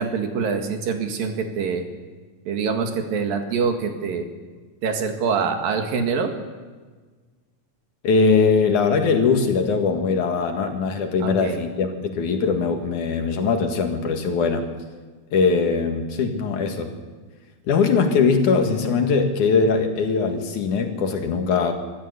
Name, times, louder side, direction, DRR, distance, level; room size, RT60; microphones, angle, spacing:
voice 1, 0.0-1.9 2.5-4.3 4.8-6.3 11.2-11.6, right 5 dB, 85° right, 5 dB, 3.7 m, -25 dB
voice 2, 8.0-14.7 15.3-16.9 17.7-21.7, left 5 dB, 65° left, 4 dB, 3.1 m, -21 dB
23.5 x 14.0 x 8.2 m, 1.4 s
omnidirectional pair, 4.0 m